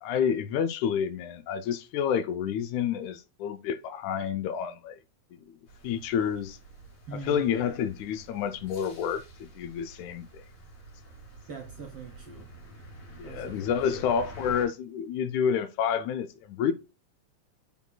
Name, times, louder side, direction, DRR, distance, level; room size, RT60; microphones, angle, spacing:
voice 1, 0.0-5.0 5.8-6.6 7.1-10.4 13.2-16.7, left 8 dB, 80° left, 1.9 m, -29 dB
sound 1, 5.7-14.7, right 2 dB, 55° left, 3.4 m, -48 dB
voice 2, 7.1-7.4 11.5-12.5 13.2-14.0, right 4 dB, 65° right, 1.5 m, -43 dB
7.1 x 6.1 x 2.2 m
omnidirectional pair, 3.5 m